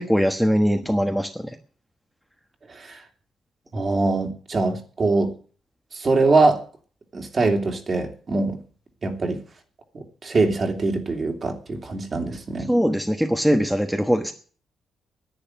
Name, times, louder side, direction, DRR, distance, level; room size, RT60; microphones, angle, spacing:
voice 1, 0.0-1.4 12.7-14.3, equal, ahead, 4 dB, 1.3 m, -21 dB
voice 2, 2.7-3.0 3.7-5.3 5.9-6.6 7.1-8.6 9.0-9.4 9.9-12.7, right 3 dB, 40° right, 4 dB, 3.0 m, -23 dB
10.5 x 9.8 x 9.5 m, 0.43 s
cardioid pair, 105°, 0 cm